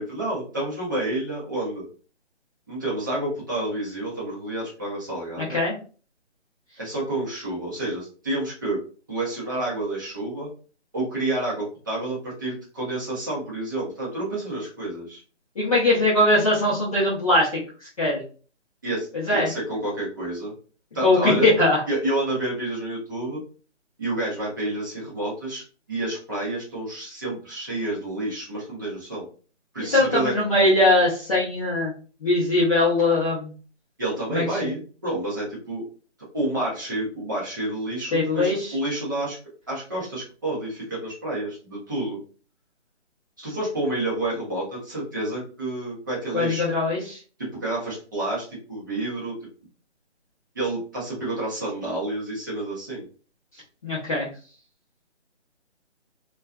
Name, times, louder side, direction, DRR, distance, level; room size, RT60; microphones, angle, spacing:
voice 1, 0.0-1.8 2.7-5.6 6.8-8.8 9.1-10.5 10.9-15.2 18.8-20.5 20.9-21.4 21.9-23.4 24.0-25.6 25.9-29.3 29.7-30.3 34.0-35.8 36.3-39.4 39.7-42.2 43.4-46.7 47.4-49.4 50.5-53.1, right 2 dB, 15° right, -6 dB, 0.6 m, -29 dB
voice 2, 15.6-17.5 18.0-18.2 19.3-19.5 21.0-21.8 29.9-31.9 32.2-33.5 34.3-34.4 38.1-38.5 46.3-47.2 53.8-54.3, left 2 dB, 30° left, -9 dB, 0.7 m, -20 dB
2.4 x 2.3 x 2.3 m, 0.39 s
figure-of-eight pair, 160°, 35 cm